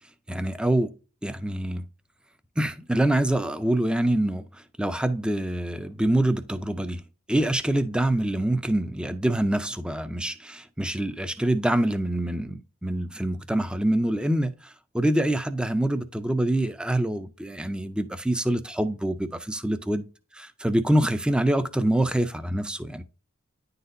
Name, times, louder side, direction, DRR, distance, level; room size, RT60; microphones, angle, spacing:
voice 1, 0.3-0.9 1.2-1.8 2.6-7.0 7.3-20.1 20.3-23.0, right 1 dB, 5° right, 0.4 m, -25 dB
10.0 x 4.0 x 2.6 m
head